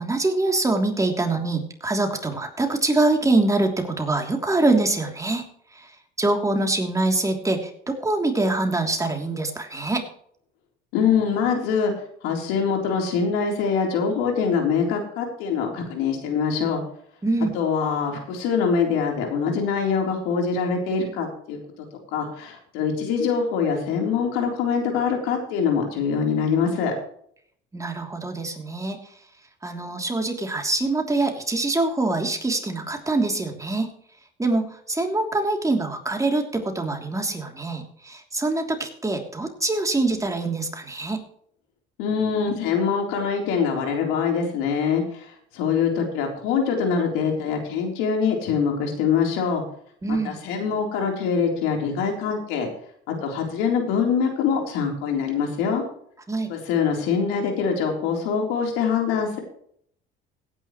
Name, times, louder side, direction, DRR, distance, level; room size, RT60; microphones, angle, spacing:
voice 1, 0.0-5.4 5.7-10.0 17.2-17.5 27.7-29.1 29.6-33.9 34.4-41.2 50.0-50.4 56.3-56.5, right 2 dB, 15° right, 3 dB, 3.1 m, -24 dB
voice 2, 10.9-11.9 12.2-16.8 17.5-21.6 22.1-26.9 42.0-49.6 50.1-52.7 53.2-55.8 56.5-59.4, left 6 dB, 90° left, 2 dB, 3.8 m, -24 dB
17.0 x 9.9 x 3.2 m, 0.63 s
supercardioid pair, 90°, 21 cm